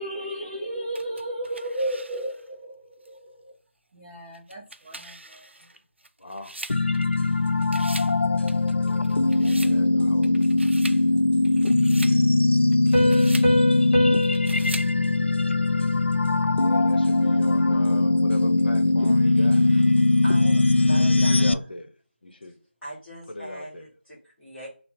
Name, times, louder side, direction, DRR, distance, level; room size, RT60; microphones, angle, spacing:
voice 1, 0.0-3.5 3.9-5.4, right 1 dB, 10° right, 0.5 m, -33 dB
sound 1, 0.9-2.5 3.0-3.1 4.3-7.3 7.6-8.2 8.5-9.8 10.2-11.0 11.4-12.2 12.7-13.5 14.2-14.9, right 2 dB, 75° right, 0.5 m, -41 dB
voice 2, 6.2-6.6 8.4-8.5 9.6-10.3 12.9-13.3 16.6-19.6 20.9-21.9 22.2-22.5 23.3-23.8, left 1 dB, 55° left, 0.8 m, -39 dB
sound 2, 6.7-21.5, left 2 dB, 80° left, 0.4 m, -20 dB
Piano, 12.9-16.3, equal, 30° left, 1.0 m, -27 dB
voice 3, 19.0-19.9 20.2-21.8 22.4-22.5 22.8-24.7, right 1 dB, 5° left, 0.9 m, -41 dB
5.7 x 2.0 x 2.9 m
figure-of-eight pair, 170°, 6 cm